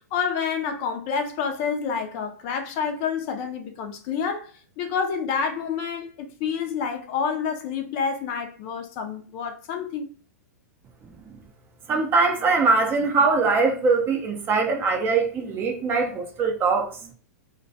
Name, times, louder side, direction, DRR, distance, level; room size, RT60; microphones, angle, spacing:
voice 1, 0.1-4.5 4.8-10.1, left 6 dB, 40° left, 0.4 m, -28 dB
voice 2, 11.9-16.9, right 4 dB, 25° right, 0.5 m, -22 dB
2.2 x 2.2 x 2.6 m
hypercardioid pair, 125°, 9 cm